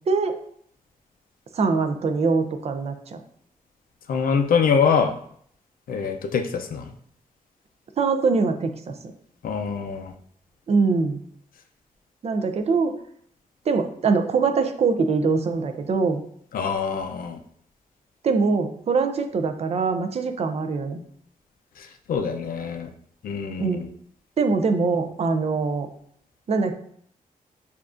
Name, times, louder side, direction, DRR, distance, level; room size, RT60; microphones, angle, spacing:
voice 1, 0.1-0.4 1.5-3.2 8.0-8.9 10.7-11.2 12.2-13.0 13.7-16.2 18.2-21.0 23.6-23.8 24.4-25.9 26.5-26.8, right 4 dB, 45° right, 7 dB, 0.4 m, -23 dB
voice 2, 4.1-5.2 5.9-6.9 9.4-10.1 16.5-17.4 21.8-22.9 23.2-23.9, left 6 dB, 85° left, 5 dB, 0.5 m, -24 dB
6.9 x 2.4 x 2.5 m, 0.64 s
wide cardioid pair, 150°, 14 cm